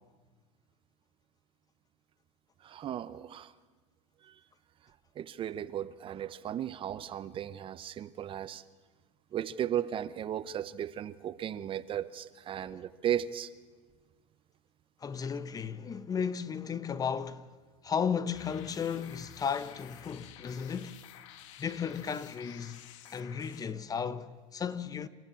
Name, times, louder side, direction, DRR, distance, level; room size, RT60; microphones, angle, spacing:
voice 1, 2.6-3.5 4.2-4.3 5.2-8.6 9.3-13.5, right 10 dB, 35° right, 0.7 m, -35 dB
voice 2, 15.0-17.5 17.8-21.0 21.6-22.8 23.1-25.1, left 7 dB, 25° left, 0.8 m, -34 dB
sound 1, 18.3-23.7, left 11 dB, 75° left, 1.4 m, -52 dB
28.0 x 13.5 x 8.7 m
supercardioid pair, 125°, 16 cm